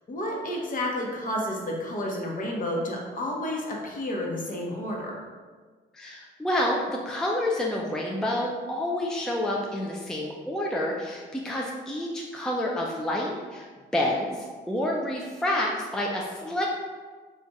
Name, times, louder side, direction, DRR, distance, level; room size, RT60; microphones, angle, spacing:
voice 1, 0.1-5.2, left 1 dB, 45° left, -1 dB, 0.9 m, -31 dB
voice 2, 5.9-13.7 13.9-16.7, left 1 dB, 5° left, -2 dB, 0.4 m, -28 dB
3.4 x 2.4 x 4.0 m, 1.4 s
cardioid pair, 90°, 20 cm